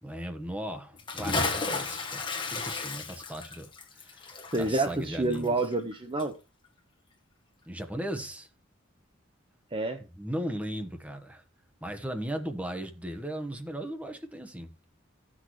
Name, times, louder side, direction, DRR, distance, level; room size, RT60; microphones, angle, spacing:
voice 1, 0.0-5.6 7.7-8.5 10.0-11.4 11.8-14.7, right 1 dB, 5° right, 1.1 m, -37 dB
Bathtub (filling or washing) / Splash splatter, 1.0-5.9 6.2-6.3, left 3 dB, 25° left, 1.4 m, -33 dB
voice 2, 4.5-6.3 9.7-10.0, right 2 dB, 25° right, 0.7 m, -28 dB
15.5 x 6.3 x 3.1 m
head